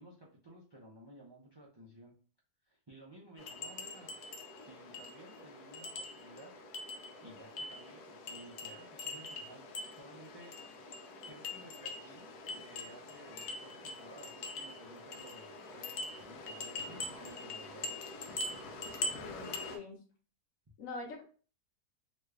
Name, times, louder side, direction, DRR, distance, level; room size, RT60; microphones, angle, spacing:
voice 1, 0.0-2.1 2.7-4.1 4.6-6.5 6.8-10.5 11.3-18.1, right 1 dB, 40° right, -4 dB, 0.3 m, -55 dB
sound 1, 3.4-19.8, left 2 dB, 85° left, 1.2 m, -43 dB
voice 2, 19.1-20.0 20.8-21.2, left 3 dB, 60° left, 1 dB, 1.1 m, -44 dB
3.1 x 2.4 x 3.1 m, 0.40 s
omnidirectional pair, 1.6 m